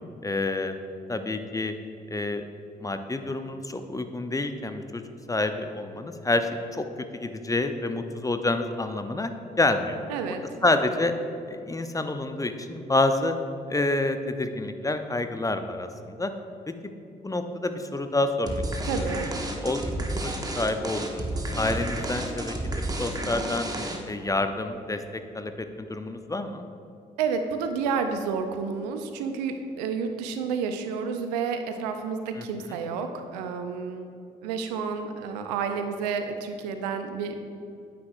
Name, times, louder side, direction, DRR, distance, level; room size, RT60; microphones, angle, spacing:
voice 1, 0.2-0.7 1.1-1.7 2.1-2.4 2.8-5.0 5.3-6.8 7.1-9.3 9.6-10.0 10.6-11.1 11.5-13.3 13.7-16.3 17.2-18.6 19.0-19.1 19.6-19.8 20.2-21.2 21.6-22.6 23.0-23.7 24.1-26.7 32.4-32.8, left 2 dB, 15° left, 8 dB, 0.6 m, -28 dB
voice 2, 10.1-10.4 18.8-19.3 27.2-34.1 34.4-37.5, right 5 dB, 80° right, 7 dB, 0.6 m, -30 dB
sound 1, 18.5-24.2, right 1 dB, 20° right, 1.2 m, -31 dB
9.4 x 8.4 x 2.5 m, 2.5 s
figure-of-eight pair, 40°, 21 cm